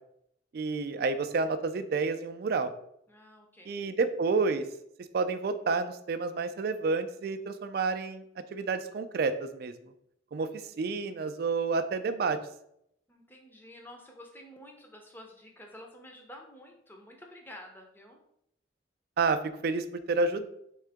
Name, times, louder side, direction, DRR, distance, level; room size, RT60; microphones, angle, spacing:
voice 1, 0.5-2.7 3.7-4.7 5.1-8.2 8.5-9.7 10.3-12.4 19.2-20.5, right 4 dB, 50° right, 10 dB, 0.3 m, -29 dB
voice 2, 3.1-3.8 13.1-18.2, left 1 dB, 10° left, 2 dB, 0.6 m, -50 dB
3.7 x 3.6 x 3.4 m, 0.75 s
head